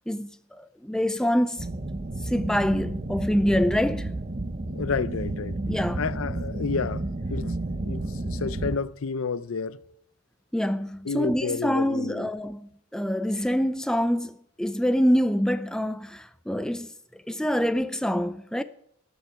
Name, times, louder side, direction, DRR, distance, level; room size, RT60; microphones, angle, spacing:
voice 1, 0.1-1.7 2.2-4.1 5.7-6.0 10.5-16.9 17.3-18.6, equal, 5° left, 0.4 m, -25 dB
sound 1, 1.6-8.8, right 2 dB, 35° right, 0.7 m, -31 dB
voice 2, 4.7-5.6 6.0-7.0 7.3-7.6 7.8-9.8 11.1-12.3, left 5 dB, 80° left, 0.5 m, -30 dB
12.5 x 7.1 x 8.7 m
head